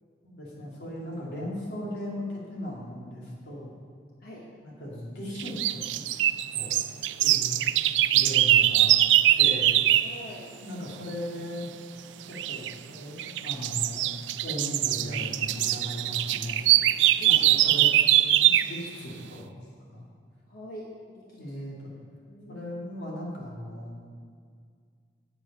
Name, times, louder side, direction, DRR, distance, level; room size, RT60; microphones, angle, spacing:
voice 1, 0.2-3.7 4.6-6.3 6.5-6.7 7.2-7.6 8.1-8.9 9.4-9.7 10.6-11.7 12.2-14.1 14.4-16.6 17.2-17.9 18.6-19.5 19.8-20.1 21.4-21.9 22.5-24.0, equal, 75° left, -5 dB, 2.5 m, -37 dB
sound 1, 5.4-10.1 12.4-12.7 13.2-18.8, right 13 dB, 90° right, 0.3 m, -22 dB
voice 2, 10.0-10.5 17.2-17.5 20.5-21.4 22.3-22.7, equal, 55° left, -4 dB, 1.2 m, -44 dB
7.9 x 7.9 x 5.4 m, 2.1 s
head